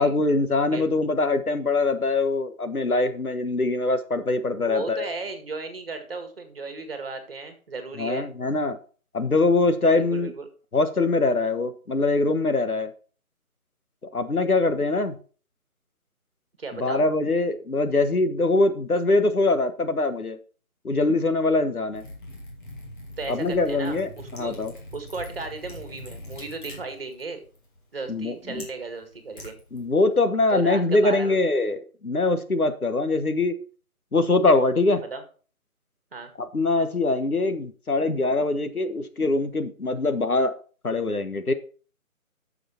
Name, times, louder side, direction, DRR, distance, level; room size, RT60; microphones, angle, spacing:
voice 1, 0.0-5.0 8.0-8.8 9.1-10.3 10.7-12.9 14.1-15.2 16.8-20.4 20.8-22.0 23.3-24.7 28.1-28.6 29.7-33.5 34.1-35.0 36.4-40.5 40.8-41.5, left 2 dB, 80° left, 9 dB, 1.4 m, -23 dB
voice 2, 4.6-8.3 9.9-10.5 16.6-17.0 23.2-24.6 24.9-27.4 27.9-29.6 30.5-31.4 35.0-35.2 36.1-36.3, right 3 dB, 40° right, 7 dB, 2.0 m, -35 dB
Liquid, 21.9-30.2, left 1 dB, 35° left, 2.6 m, -43 dB
9.4 x 6.8 x 4.4 m, 0.39 s
figure-of-eight pair, 155°, 43 cm